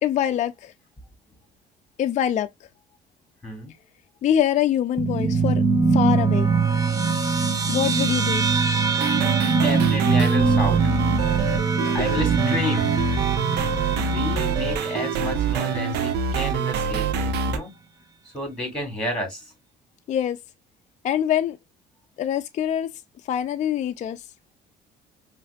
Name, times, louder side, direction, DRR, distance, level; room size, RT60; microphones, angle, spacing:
voice 1, 0.0-0.7 2.0-2.5 4.2-5.6 5.9-6.5 7.7-8.5 11.8-12.0 20.1-20.4 21.0-21.6 22.2-22.9 23.3-24.2, left 10 dB, 45° left, 0.4 m, -24 dB
voice 2, 3.4-3.7 9.0-10.8 11.9-12.9 13.5-17.7 18.2-19.5, left 1 dB, 5° left, 3.1 m, -31 dB
sound 1, 5.0-15.7, right 4 dB, 20° right, 0.7 m, -22 dB
sound 2, 9.0-17.6, right 6 dB, 85° right, 0.7 m, -26 dB
5.5 x 2.6 x 2.3 m
cardioid pair, 110°, 17 cm